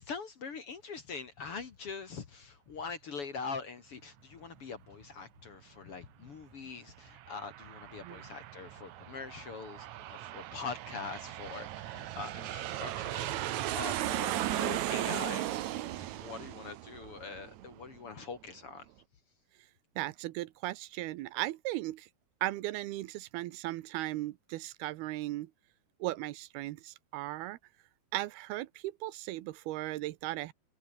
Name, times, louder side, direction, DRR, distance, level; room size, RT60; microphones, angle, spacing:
voice 1, 0.0-15.6 15.9-18.9, left 5 dB, 45° left, 2.2 m, -43 dB
Aircraft, 6.9-18.1, right 14 dB, 70° right, 1.9 m, -37 dB
voice 2, 20.0-22.1 22.4-25.5 26.0-27.6 28.1-30.5, right 17 dB, 90° right, 2.8 m, -37 dB
omnidirectional pair, 4.4 m